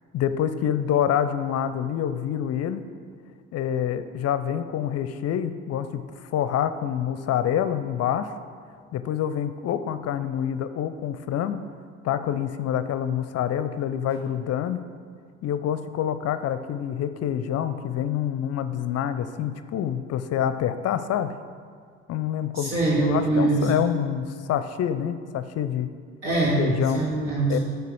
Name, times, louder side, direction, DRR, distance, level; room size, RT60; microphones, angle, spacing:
voice 1, 0.1-2.8 3.5-8.3 8.9-11.6 12.0-14.8 15.4-21.3 22.1-25.9 26.6-27.1 27.5-27.6, left 9 dB, 40° left, 11 dB, 0.5 m, -27 dB
voice 2, 22.5-23.6 26.2-26.6 26.9-27.6, right 2 dB, 75° right, -6 dB, 2.0 m, -23 dB
6.7 x 6.6 x 6.4 m, 2.1 s
hypercardioid pair, 55°, 38 cm